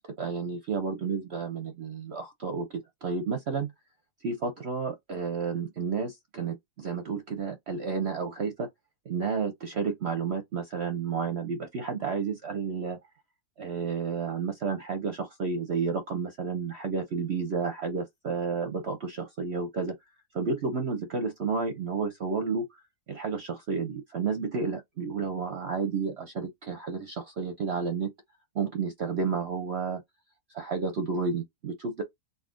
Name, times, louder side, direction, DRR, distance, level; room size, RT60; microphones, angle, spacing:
voice 1, 0.2-3.7 4.2-8.7 9.1-13.0 13.6-19.9 20.3-22.8 23.1-28.1 28.5-30.0 30.5-32.0, right 5 dB, 55° right, 0.8 m, -31 dB
4.0 x 2.7 x 3.7 m
omnidirectional pair, 1.7 m